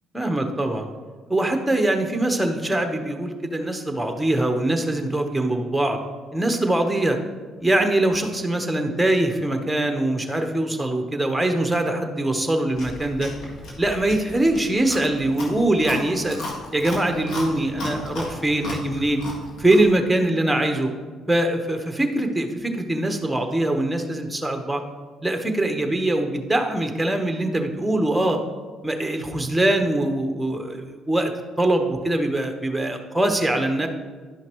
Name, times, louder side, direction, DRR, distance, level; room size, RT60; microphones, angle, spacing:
voice 1, 0.1-0.9 1.3-6.0 6.3-7.2 7.6-13.3 13.8-16.4 16.7-19.2 19.6-20.9 21.3-24.8 25.2-28.4 28.8-31.3 31.6-33.9, right 1 dB, 5° right, 4 dB, 1.1 m, -22 dB
Chewing mastication, 12.7-19.9, left 1 dB, 70° left, 1.7 m, -35 dB
11.0 x 5.6 x 3.1 m, 1.4 s
supercardioid pair, 65°, 0 cm